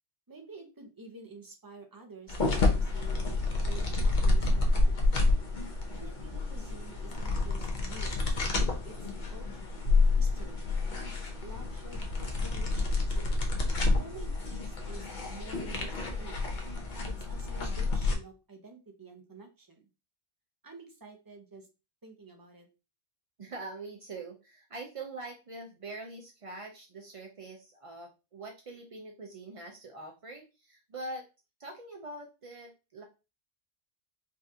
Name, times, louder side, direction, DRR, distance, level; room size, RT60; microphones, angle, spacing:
voice 1, 0.3-5.0 5.9-8.2 8.8-9.8 10.2-11.1 11.4-13.2 13.8-15.9 16.2-16.4 17.1-19.8 20.6-21.7 22.0-22.7, right 3 dB, 20° right, 3 dB, 0.6 m, -49 dB
sound 1, 2.3-18.1, left 3 dB, 45° left, 0.8 m, -29 dB
voice 2, 23.4-31.3 31.6-33.0, right 2 dB, 60° right, 2 dB, 0.3 m, -43 dB
4.9 x 2.5 x 2.7 m, 0.29 s
omnidirectional pair, 1.3 m